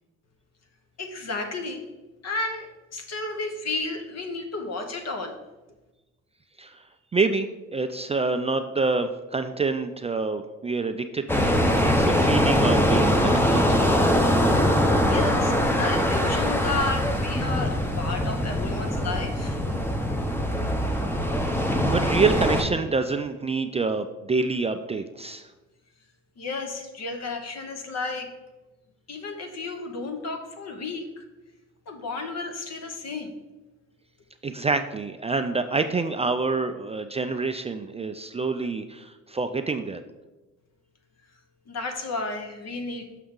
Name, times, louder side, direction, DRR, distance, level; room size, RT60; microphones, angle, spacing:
voice 1, 1.0-1.9 2.2-5.4 15.1-19.6 26.4-28.3 29.1-31.2 31.9-33.3 41.7-43.2, left 3 dB, 60° left, 6 dB, 1.1 m, -32 dB
voice 2, 7.1-11.5 11.8-13.8 21.9-25.5 34.4-40.0, right 4 dB, 20° right, 8 dB, 0.3 m, -27 dB
sound 1, 11.3-22.6, equal, 5° left, 0.7 m, -22 dB
6.3 x 5.8 x 3.7 m, 1.1 s
cardioid pair, 90°, 30 cm